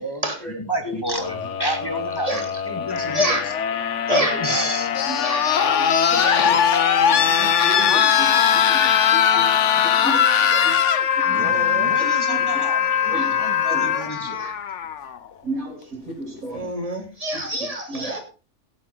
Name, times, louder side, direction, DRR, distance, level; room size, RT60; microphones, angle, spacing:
voice 1, 0.5-3.4 4.4-4.9 11.2-14.4, right 1 dB, 15° left, 4 dB, 2.2 m, -30 dB
sound 1, 1.2-15.2 16.4-16.5, left 8 dB, 60° left, 1.2 m, -20 dB
voice 2, 3.1-3.4 4.1-4.7 5.2-5.8 6.2-6.6 7.4-7.5 10.5-10.8 11.3-11.9 13.1-13.3 14.3-14.5 16.5-18.2, right 1 dB, 25° right, 3 dB, 3.3 m, -27 dB
voice 3, 6.1-6.5 7.0-8.3 8.7-10.7 11.3-11.6 12.0-12.6 13.1-13.3 13.7-13.9 15.4-16.7 17.9-18.0, right 1 dB, 90° right, 2 dB, 3.9 m, -34 dB
17.0 x 9.5 x 4.1 m, 0.35 s
omnidirectional pair, 1.4 m